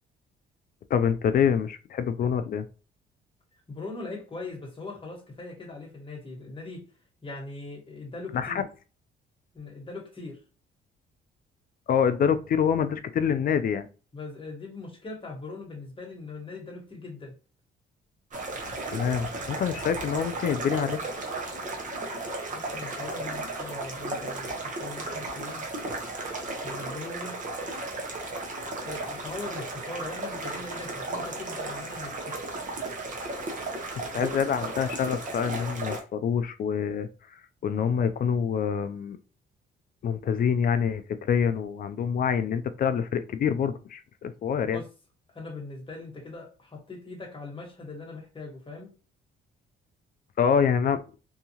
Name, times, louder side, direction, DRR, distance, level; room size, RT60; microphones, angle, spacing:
voice 1, 0.9-2.7 8.3-8.6 11.9-13.9 18.9-21.0 34.1-37.1 37.6-39.2 40.0-44.8 50.4-51.0, left 7 dB, 45° left, 0.4 m, -26 dB
voice 2, 3.7-6.9 7.2-8.6 9.5-10.4 14.1-17.3 22.5-25.6 26.6-27.4 28.8-32.5 44.7-44.9 45.3-48.9, left 3 dB, 25° left, 1.3 m, -40 dB
sound 1, 18.3-36.0, right 2 dB, 40° right, 1.0 m, -35 dB
2.7 x 2.3 x 2.8 m
cardioid pair, 90°, 20 cm